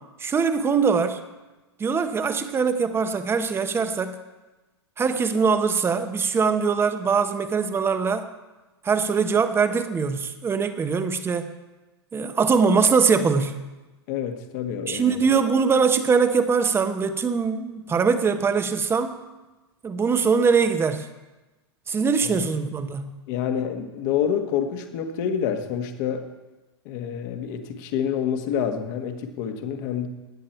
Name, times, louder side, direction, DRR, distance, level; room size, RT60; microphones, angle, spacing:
voice 1, 0.2-1.2 1.8-4.2 5.0-8.3 8.8-11.5 12.1-13.7 14.9-19.2 19.8-21.1 21.9-23.2, right 5 dB, 15° right, 10 dB, 1.0 m, -22 dB
voice 2, 14.1-15.2 22.2-22.5 23.3-26.2 26.8-30.1, left 8 dB, 50° left, 6 dB, 1.6 m, -27 dB
16.5 x 10.0 x 4.5 m, 1.1 s
hypercardioid pair, 105°, 14 cm